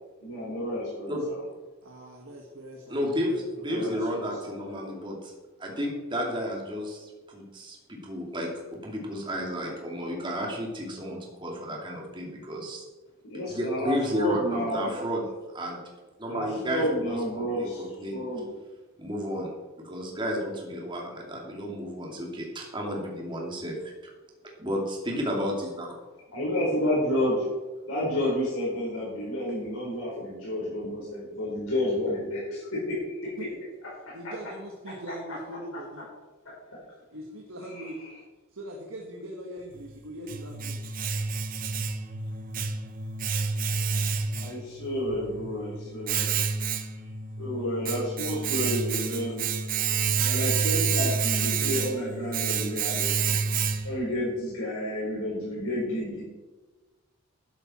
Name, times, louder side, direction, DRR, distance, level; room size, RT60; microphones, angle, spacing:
voice 1, 0.2-1.4 3.7-4.9 13.3-14.9 16.3-18.5 26.3-27.4 27.8-33.3 34.0-34.1 36.7-36.8 37.7-37.9 43.9-46.3 47.4-49.5 50.2-53.4 53.8-56.2, left 1 dB, 75° left, -6 dB, 4.4 m, -30 dB
voice 2, 1.8-4.0 14.4-15.0 33.4-33.5 34.1-36.1 37.1-38.1 38.5-40.9 42.7-42.9, right 1 dB, 65° right, 0 dB, 1.6 m, -41 dB
voice 3, 2.9-5.3 5.6-12.8 13.5-15.2 15.5-15.8 16.2-18.2 19.0-19.5 19.8-23.9 24.6-26.0, equal, 20° right, -1 dB, 2.6 m, -32 dB
Domestic sounds home sounds, 39.7-54.1, right 5 dB, 40° right, 0.8 m, -29 dB
12.0 x 11.0 x 4.4 m, 1.2 s
head